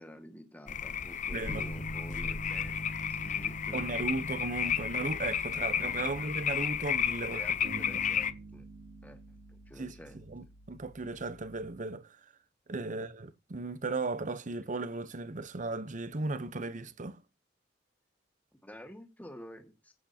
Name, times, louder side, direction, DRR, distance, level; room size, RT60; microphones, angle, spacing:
voice 1, 0.0-4.1 5.9-6.9 7.3-8.7 9.0-9.2 9.5-10.2 12.8-13.1 18.6-19.9, equal, 10° left, 1.8 m, -50 dB
sound 1, 0.7-8.3, left 8 dB, 40° left, 0.7 m, -33 dB
voice 2, 1.3-1.7 2.2-2.3 3.7-7.4 7.7-7.9 9.8-12.2 12.7-17.2, right 3 dB, 45° right, 0.8 m, -36 dB
Piano, 1.5-11.7, equal, 80° left, 1.3 m, -46 dB
sound 2, 7.6-10.7, right 2 dB, 70° right, 2.6 m, -47 dB
15.5 x 8.6 x 2.8 m
head